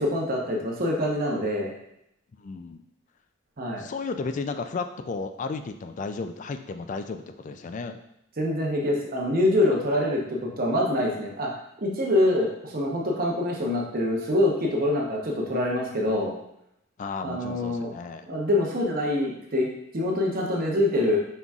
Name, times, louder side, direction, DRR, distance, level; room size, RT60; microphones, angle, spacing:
voice 1, 0.0-1.7 3.6-3.8 8.4-11.5 11.8-16.3 17.2-17.9 18.3-19.7 19.9-21.2, left 1 dB, 50° right, -1 dB, 0.9 m, -25 dB
voice 2, 2.3-2.8 3.8-8.0 17.0-18.3, left 4 dB, 40° left, 8 dB, 0.3 m, -33 dB
5.6 x 3.8 x 2.4 m, 0.79 s
head